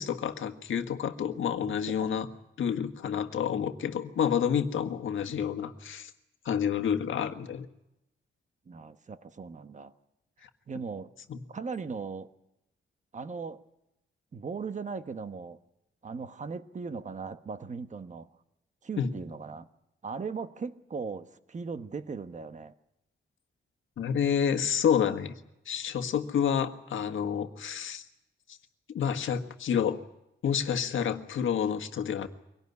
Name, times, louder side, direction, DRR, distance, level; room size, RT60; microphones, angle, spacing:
voice 1, 0.0-2.3 2.6-6.1 6.4-7.7 11.3-11.4 19.0-19.1 24.0-25.3 25.6-28.0 28.9-30.0 30.4-32.3, left 8 dB, 85° left, 8 dB, 1.6 m, -29 dB
voice 2, 1.7-2.1 8.7-9.9 10.7-11.1 11.5-12.3 13.1-13.6 14.3-15.6 16.0-18.3 18.8-19.7 20.0-22.7, right 5 dB, 40° right, 10 dB, 1.2 m, -38 dB
23.5 x 18.0 x 9.6 m, 0.88 s
wide cardioid pair, 125°, 20 cm